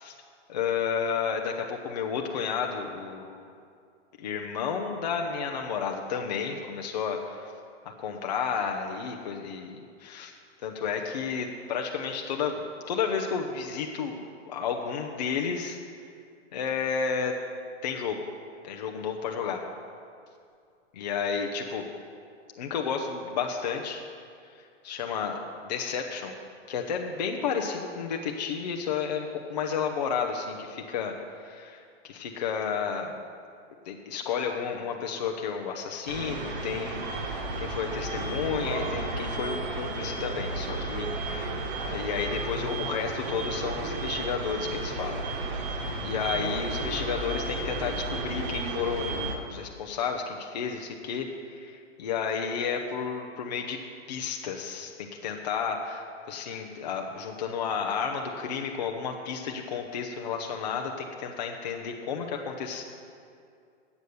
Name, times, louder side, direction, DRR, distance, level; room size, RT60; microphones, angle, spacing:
voice 1, 0.5-3.5 4.2-7.5 7.8-10.3 10.6-14.2 14.5-15.8 16.5-17.4 17.8-18.2 18.6-19.6 20.9-21.8 22.6-24.0 24.6-26.3 26.7-33.1 33.9-41.6 41.9-53.8 54.1-62.8, left 6 dB, 35° left, 2 dB, 0.6 m, -32 dB
sound 1, 36.1-49.3, right 2 dB, 40° right, 1.3 m, -33 dB
9.4 x 8.1 x 6.7 m, 2.4 s
hypercardioid pair, 165°, 38 cm